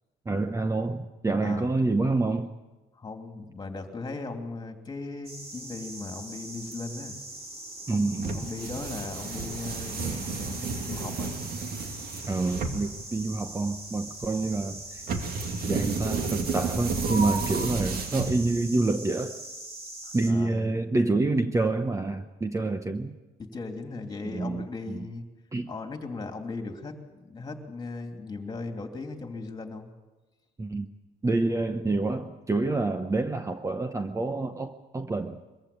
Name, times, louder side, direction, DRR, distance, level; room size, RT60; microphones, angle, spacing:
voice 1, 0.3-2.5 7.9-8.5 12.3-15.0 15.7-19.4 20.1-23.2 24.2-25.1 25.5-25.7 30.6-30.9 31.2-35.4, right 2 dB, 20° right, 9 dB, 0.9 m, -27 dB
voice 2, 1.4-1.7 2.9-7.1 7.9-11.4 20.0-20.8 22.6-22.7 23.4-25.3 25.7-29.9, left 3 dB, 25° left, 5 dB, 3.0 m, -38 dB
sound 1, 5.2-20.3, right 2 dB, 40° right, 4.4 m, -42 dB
sound 2, 8.2-18.8, right 4 dB, 60° right, 2.4 m, -32 dB
23.0 x 15.0 x 8.8 m, 1.2 s
cardioid pair, 110°, 17 cm